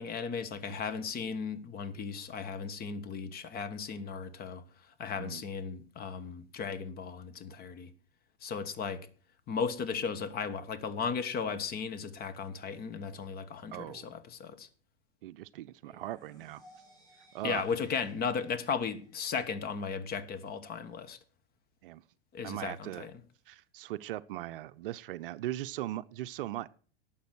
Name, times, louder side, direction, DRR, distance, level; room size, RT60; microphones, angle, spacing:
voice 1, 0.0-4.6 5.0-7.9 8.4-9.1 9.5-14.7 17.4-21.2 22.3-23.1, left 6 dB, 30° left, 1.3 m, -36 dB
voice 2, 5.1-5.4 13.7-14.1 15.2-16.6 17.3-17.7 21.8-22.0 22.4-23.1 23.5-26.7, right 14 dB, 55° right, 0.6 m, -39 dB
sound 1, 15.8-19.8, equal, 10° left, 4.9 m, -59 dB
11.5 x 7.4 x 6.2 m
hypercardioid pair, 100°, 32 cm